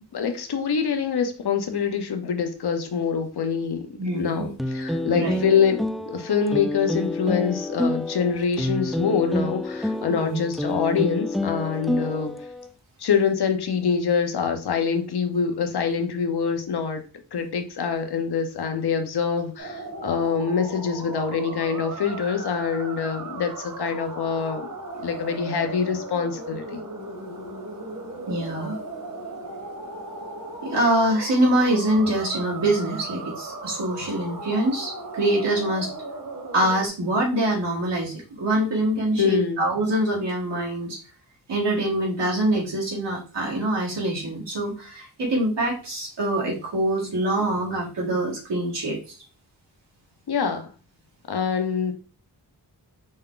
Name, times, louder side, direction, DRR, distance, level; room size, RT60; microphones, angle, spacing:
voice 1, 0.1-12.4 13.0-17.0 17.3-24.7 24.9-26.8 39.2-39.6 50.3-50.7 51.3-51.9, left 6 dB, 70° left, 0.9 m, -25 dB
voice 2, 4.0-4.5 5.1-5.4 10.1-10.4 28.3-28.8 30.6-35.9 36.5-41.0 41.5-49.0, right 1 dB, 90° right, 2.0 m, -24 dB
sound 1, 4.6-12.7, left 1 dB, ahead, 0.3 m, -28 dB
sound 2, 19.6-36.9, right 2 dB, 50° right, 1.4 m, -37 dB
5.3 x 2.3 x 3.8 m
cardioid pair, 65°, 41 cm